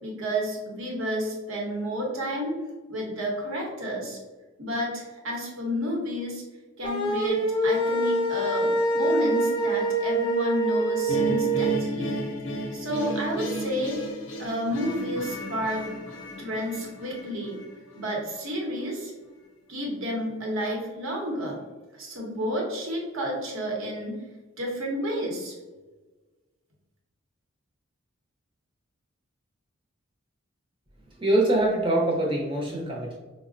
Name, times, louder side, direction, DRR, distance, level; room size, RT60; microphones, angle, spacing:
voice 1, 0.0-2.6 2.9-4.2 4.6-6.4 6.8-12.1 12.7-14.0 14.4-15.9 16.4-17.6 18.0-19.1 19.7-21.6 21.9-24.2 24.6-25.5, equal, 70° right, -1 dB, 0.9 m, -31 dB
sound 1, 6.8-11.7, right 2 dB, 20° left, 0.4 m, -25 dB
sound 2, 11.1-18.2, right 1 dB, 60° left, 0.6 m, -33 dB
voice 2, 31.2-33.2, right 1 dB, 25° right, -2 dB, 0.7 m, -24 dB
4.8 x 2.1 x 2.5 m, 1.2 s
head